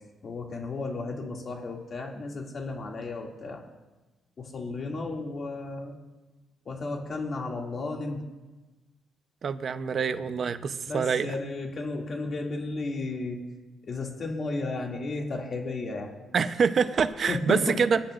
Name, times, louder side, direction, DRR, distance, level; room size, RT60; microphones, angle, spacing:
voice 1, 0.2-3.6 4.4-6.0 6.7-8.2 10.9-13.4 13.9-16.1 17.3-17.7, left 3 dB, 45° left, 0 dB, 2.4 m, -33 dB
voice 2, 9.4-11.3 16.3-18.0, right 6 dB, 50° right, 10 dB, 0.8 m, -25 dB
26.0 x 10.0 x 2.5 m, 1.2 s
cardioid pair, 90°, 0 cm